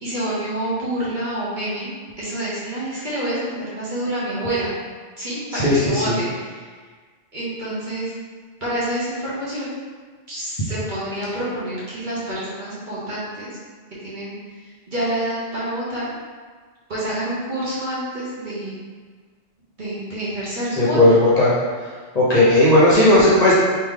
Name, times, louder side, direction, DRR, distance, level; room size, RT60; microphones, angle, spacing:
voice 1, 0.0-1.9 2.2-4.7 5.2-6.7 7.3-8.1 8.6-9.8 10.3-13.5 14.0-16.1 16.9-18.8 19.8-21.2, right 1 dB, 45° right, -9 dB, 1.1 m, -27 dB
voice 2, 5.5-6.2 20.8-21.5 22.1-23.5, left 1 dB, 40° left, -9 dB, 0.8 m, -15 dB
3.2 x 2.8 x 3.7 m, 1.5 s
omnidirectional pair, 1.2 m